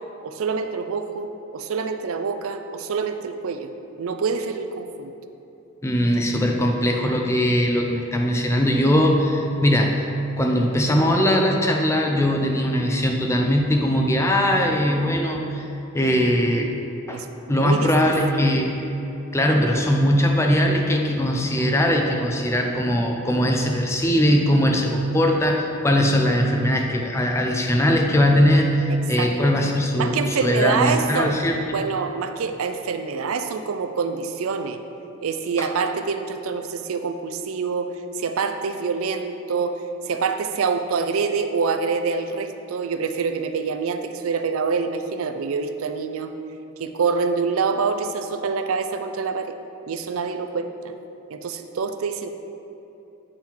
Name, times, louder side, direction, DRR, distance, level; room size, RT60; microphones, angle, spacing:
voice 1, 0.2-3.7 4.0-5.1 17.1-18.1 28.9-29.5 30.0-31.4 31.7-34.8 35.2-39.8 40.1-46.3 46.8-49.5 49.9-50.7 51.3-52.3, right 5 dB, 75° right, 7 dB, 0.4 m, -26 dB
voice 2, 5.8-10.1 10.4-15.7 15.9-16.7 17.1-17.2 17.5-18.7 19.3-31.6 35.6-35.7, equal, 15° left, 2 dB, 0.5 m, -20 dB
8.8 x 3.8 x 4.4 m, 2.9 s
head